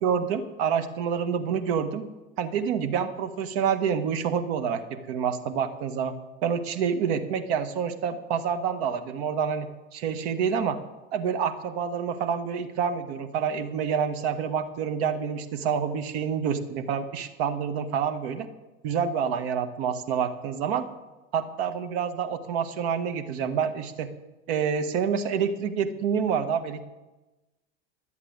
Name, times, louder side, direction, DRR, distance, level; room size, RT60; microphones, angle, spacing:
voice 1, 0.0-2.1 2.4-6.1 6.4-10.8 11.1-18.5 18.8-20.8 21.3-24.1 24.5-26.8, right 7 dB, 65° right, 8 dB, 1.7 m, -27 dB
13.5 x 8.1 x 9.5 m, 1.1 s
hypercardioid pair, 110°, 35 cm